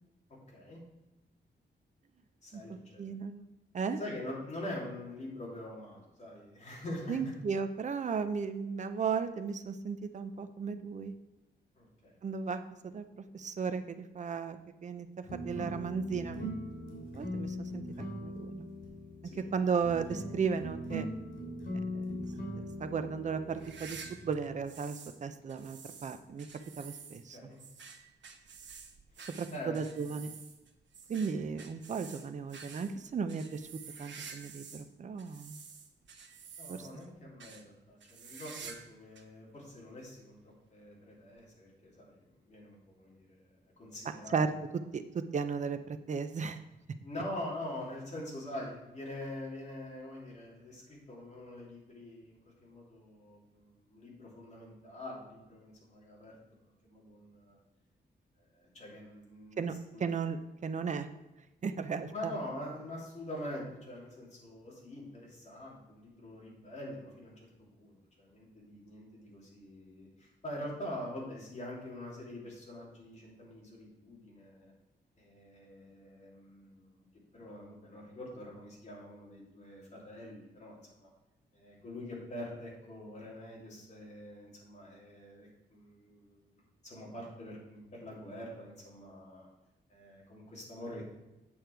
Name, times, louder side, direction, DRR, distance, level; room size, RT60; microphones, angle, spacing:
voice 1, 0.5-0.8 2.4-3.0 4.0-7.3 11.7-12.2 19.3-19.5 27.3-27.6 29.5-30.2 36.2-36.3 36.6-44.4 47.0-56.4 56.8-57.6 58.4-60.0 62.0-67.5 67.7-74.7 75.2-77.1 77.3-81.1 81.5-89.5 89.9-91.0, left 1 dB, 40° left, -4 dB, 2.9 m, -45 dB
voice 2, 3.0-3.5 3.7-4.0 7.1-11.1 12.2-15.1 15.3-16.5 17.1-18.7 19.5-21.1 21.9-22.0 22.6-24.0 24.2-26.5 26.8-27.4 29.4-30.3 31.1-33.7 34.0-35.6 36.7-36.9 44.3-44.5 44.9-45.0 45.3-46.6 59.6-60.4 60.6-61.1 61.6-62.3, right 5 dB, 40° right, 9 dB, 0.6 m, -35 dB
sound 1, 15.3-24.5, equal, 85° left, 2.9 m, -40 dB
sound 2, 23.5-25.2 25.5-34.9 35.2-37.1 37.4-37.6 38.0-38.9 39.2-39.3 40.0-40.1 41.4-41.5, right 5 dB, 90° right, 1.0 m, -50 dB
8.7 x 6.4 x 4.5 m, 1.0 s
wide cardioid pair, 175°, 18 cm